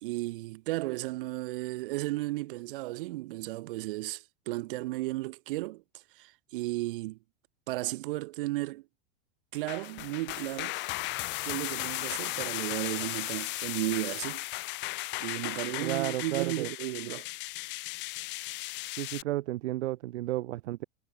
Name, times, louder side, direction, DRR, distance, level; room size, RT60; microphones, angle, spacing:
voice 1, 0.0-7.2 7.7-8.8 9.5-10.8 11.4-14.4 15.2-17.3, right 19 dB, 40° right, 1.3 m, -34 dB
sound 1, 9.5-19.2, left 22 dB, 25° left, 3.4 m, -36 dB
voice 2, 15.8-16.7 19.0-20.8, right 16 dB, 60° right, 0.9 m, -32 dB
supercardioid pair, 180°, 39 cm